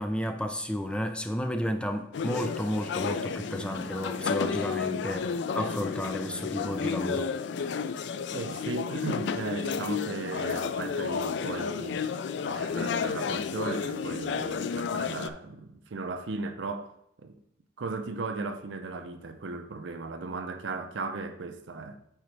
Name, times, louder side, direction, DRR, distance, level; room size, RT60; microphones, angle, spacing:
voice 1, 0.0-7.3, equal, 5° left, 0.5 m, -32 dB
sound 1, 2.1-15.3, left 6 dB, 70° left, 0.3 m, -32 dB
voice 2, 8.3-12.0 12.4-17.4 17.8-22.0, right 3 dB, 85° right, 0.6 m, -36 dB
9.0 x 3.9 x 3.3 m
head